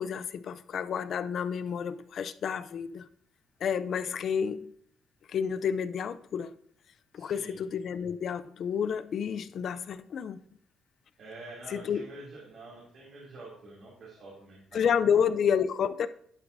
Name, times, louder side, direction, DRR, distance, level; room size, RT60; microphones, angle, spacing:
voice 1, 0.0-3.1 3.6-4.7 5.3-6.5 7.1-10.4 11.7-12.1 14.7-16.1, left 7 dB, 60° left, 0.4 m, -30 dB
voice 2, 7.1-7.6 11.2-14.9, right 2 dB, 65° right, 2.6 m, -47 dB
11.0 x 5.9 x 2.6 m
cardioid pair, 90°, 0 cm